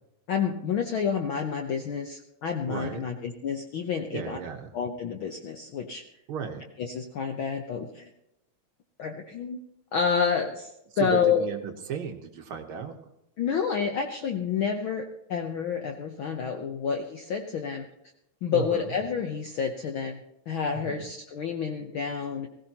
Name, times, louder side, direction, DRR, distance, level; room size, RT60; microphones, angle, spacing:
voice 1, 0.3-4.4 4.7-6.0 6.8-8.1 9.0-9.6 9.9-11.4 13.4-17.9 18.4-20.2 20.5-22.5, left 6 dB, 70° left, 4 dB, 1.2 m, -29 dB
voice 2, 2.7-3.0 4.1-4.7 6.3-6.6 10.9-12.9 18.5-18.9 20.8-21.1, right 7 dB, 60° right, 4 dB, 1.6 m, -34 dB
20.5 x 15.5 x 2.9 m, 0.84 s
omnidirectional pair, 3.3 m